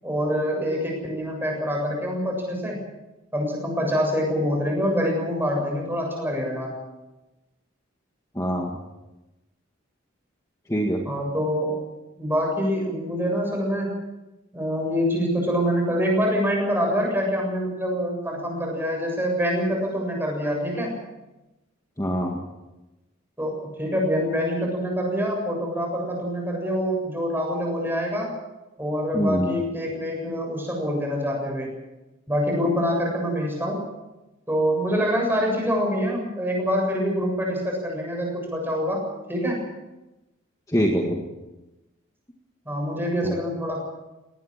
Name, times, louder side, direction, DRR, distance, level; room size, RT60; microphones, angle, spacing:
voice 1, 0.0-2.8 3.3-6.7 11.1-11.8 12.2-13.9 14.5-21.0 23.4-28.3 28.8-31.7 32.3-33.8 34.5-39.0 39.3-39.7 42.7-43.8, equal, 10° right, 0 dB, 7.4 m, -25 dB
voice 2, 8.4-8.7 10.7-11.0 22.0-22.4 29.1-29.6 40.7-41.2 43.2-43.3, equal, 15° left, 0 dB, 1.9 m, -24 dB
20.0 x 18.5 x 7.5 m, 1.0 s
head